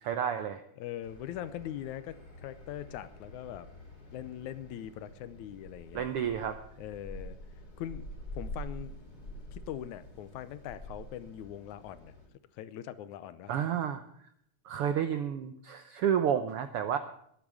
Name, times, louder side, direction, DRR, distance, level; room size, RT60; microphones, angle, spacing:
voice 1, 0.0-0.6 5.9-6.6 13.5-14.0 14.6-17.0, right 9 dB, 80° right, 10 dB, 1.3 m, -30 dB
voice 2, 0.8-3.7 4.1-6.1 6.8-7.4 7.8-8.1 8.3-8.9 9.5-12.1 12.5-13.5, left 11 dB, 75° left, 14 dB, 2.1 m, -41 dB
sound 1, 1.0-12.3, equal, 30° left, 3.6 m, -47 dB
19.5 x 8.7 x 6.4 m, 0.68 s
omnidirectional pair, 3.6 m